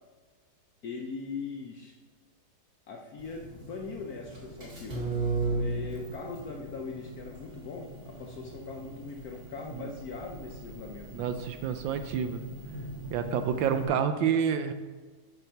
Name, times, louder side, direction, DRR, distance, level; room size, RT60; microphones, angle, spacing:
voice 1, 0.8-2.0 2.9-5.1 5.5-11.3, left 4 dB, 65° left, 2 dB, 0.9 m, -40 dB
sound 1, 3.2-13.8, right 2 dB, 45° right, 2.3 m, -38 dB
voice 2, 11.1-12.4 13.1-14.7, right 8 dB, 75° right, 9 dB, 1.2 m, -28 dB
6.7 x 5.9 x 5.6 m, 1.4 s
omnidirectional pair, 2.3 m